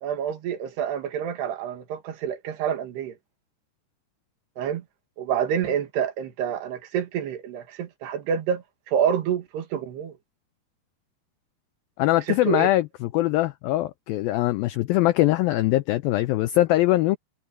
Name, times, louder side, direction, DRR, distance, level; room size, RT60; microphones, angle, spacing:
voice 1, 0.0-3.1 4.6-4.8 5.2-10.1 12.3-12.7, right 8 dB, 75° right, 4.0 m, -28 dB
voice 2, 12.0-17.2, left 16 dB, 85° left, 2.1 m, -22 dB
omnidirectional pair, 4.9 m